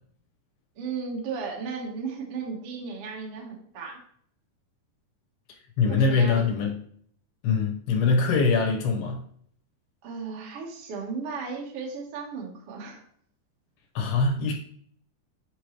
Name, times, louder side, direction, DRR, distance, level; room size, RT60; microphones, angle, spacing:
voice 1, 0.7-4.0 5.9-6.4 10.0-13.0, right 5 dB, 85° right, 1.3 m, -35 dB
voice 2, 5.8-6.8 7.4-9.2 14.0-14.5, left 4 dB, 75° left, 2.9 m, -23 dB
8.1 x 4.9 x 3.0 m
omnidirectional pair, 4.8 m